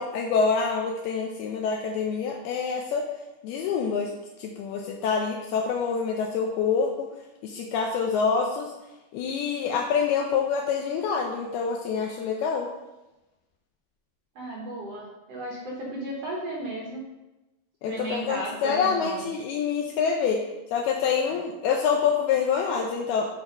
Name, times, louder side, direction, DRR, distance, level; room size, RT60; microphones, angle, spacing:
voice 1, 0.0-3.0 3.4-4.1 4.4-7.1 7.4-8.7 9.1-12.7 17.8-20.4 20.7-23.3, left 6 dB, 80° left, 1 dB, 2.5 m, -26 dB
voice 2, 14.3-17.0 17.9-19.3, right 1 dB, 75° right, -4 dB, 1.4 m, -34 dB
8.6 x 4.2 x 5.3 m, 1.0 s
omnidirectional pair, 4.7 m